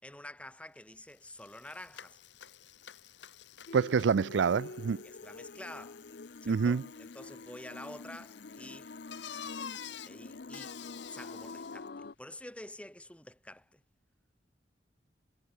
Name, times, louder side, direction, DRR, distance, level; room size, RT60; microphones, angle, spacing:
voice 1, 0.0-2.2 5.0-6.0 6.4-8.9 10.1-10.8 11.1-13.8, left 1 dB, 5° left, 4.5 m, -48 dB
Bicycle, 0.8-0.9 1.1-11.9, left 8 dB, 80° left, 1.1 m, -50 dB
sound 1, 3.7-12.2, left 3 dB, 60° left, 0.6 m, -47 dB
voice 2, 3.7-5.0 6.5-6.8, right 6 dB, 85° right, 0.4 m, -27 dB
head